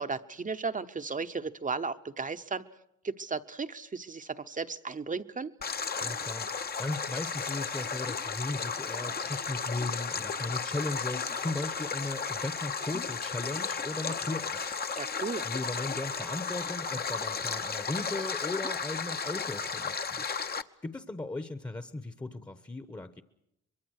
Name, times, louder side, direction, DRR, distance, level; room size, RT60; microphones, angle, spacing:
voice 1, 0.0-2.6 3.0-5.5 15.0-15.4, right 4 dB, 25° right, 9 dB, 0.9 m, -35 dB
Stream, 5.6-20.6, left 5 dB, 30° left, 0.9 m, -34 dB
voice 2, 6.0-14.8 15.4-20.2 20.8-23.2, left 2 dB, 15° left, 11 dB, 1.1 m, -37 dB
24.0 x 22.0 x 6.5 m, 0.80 s
cardioid pair, 90°, 30 cm